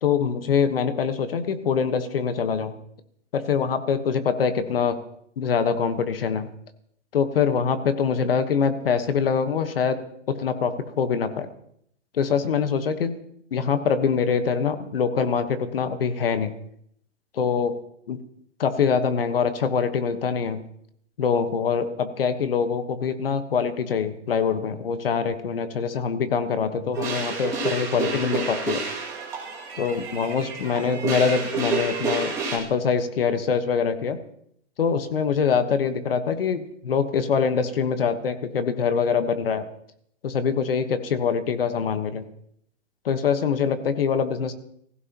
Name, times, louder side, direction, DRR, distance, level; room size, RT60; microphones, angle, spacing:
voice 1, 0.0-2.7 3.3-5.0 5.4-6.5 7.1-10.0 10.3-11.5 12.1-13.1 13.5-16.5 17.3-17.7 18.1-18.2 18.6-20.6 21.2-28.8 29.8-34.2 34.8-39.7 40.2-42.2 43.0-44.5, left 6 dB, 50° left, 10 dB, 1.3 m, -24 dB
sound 1, 26.9-32.6, right 4 dB, 10° right, 2.3 m, -29 dB
22.5 x 15.5 x 3.0 m, 0.69 s
hypercardioid pair, 175°, 37 cm